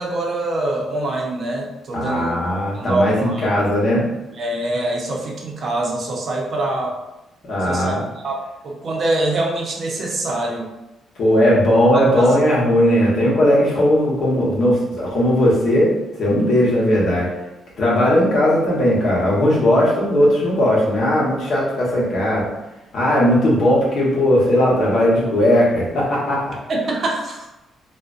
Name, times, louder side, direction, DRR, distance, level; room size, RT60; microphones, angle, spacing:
voice 1, 0.0-2.4 2.7-3.5 4.4-7.0 7.6-10.7 11.9-12.4 26.7-27.5, right 2 dB, 50° right, -1 dB, 0.6 m, -24 dB
voice 2, 1.9-4.1 7.4-8.1 11.2-15.9 16.2-17.3 17.8-22.5 22.9-26.5, equal, 65° left, -5 dB, 0.9 m, -17 dB
2.5 x 2.1 x 2.4 m, 0.99 s
cardioid pair, 90°, 0 cm